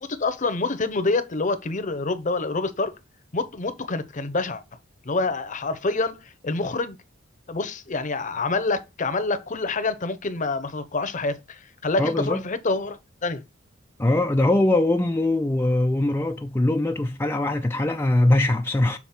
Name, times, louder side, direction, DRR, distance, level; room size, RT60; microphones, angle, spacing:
voice 1, 0.0-2.9 3.3-4.6 5.0-7.0 7.5-13.4, left 3 dB, 40° left, 0.8 m, -27 dB
voice 2, 12.0-12.5 14.0-19.0, left 1 dB, 15° left, 0.4 m, -22 dB
7.4 x 4.2 x 4.2 m
head